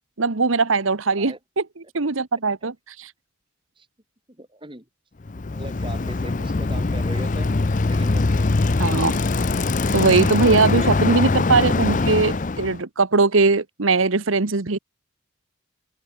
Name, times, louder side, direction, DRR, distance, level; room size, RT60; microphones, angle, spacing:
voice 1, 0.2-1.6 1.9-2.7 3.0-3.1 8.8-9.2 9.9-14.8, right 3 dB, 80° right, 1.2 m, -20 dB
voice 2, 4.4-4.9 5.5-8.5, right 1 dB, 25° right, 3.1 m, -40 dB
Bicycle, 5.3-12.8, left 3 dB, 40° left, 0.6 m, -22 dB
open air
head